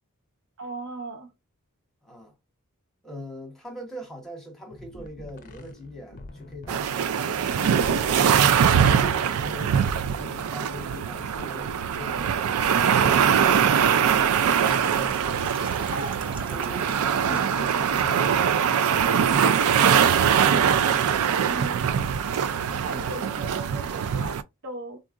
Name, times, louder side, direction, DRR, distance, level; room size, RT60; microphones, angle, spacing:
voice 1, 0.6-1.3 17.2-17.5 21.5-22.1 22.7-25.0, right 3 dB, 55° right, 0.7 m, -38 dB
voice 2, 3.0-7.1 7.5-8.4 8.7-15.9 16.5-18.3 18.7-20.0, left 1 dB, ahead, 1.0 m, -42 dB
sound 1, 4.7-15.4, left 2 dB, 35° left, 0.5 m, -45 dB
sound 2, 6.7-24.4, right 8 dB, 75° right, 0.4 m, -22 dB
Trickle dribble / Fill (with liquid), 14.4-21.8, right 2 dB, 20° right, 0.6 m, -43 dB
3.8 x 2.4 x 2.4 m
head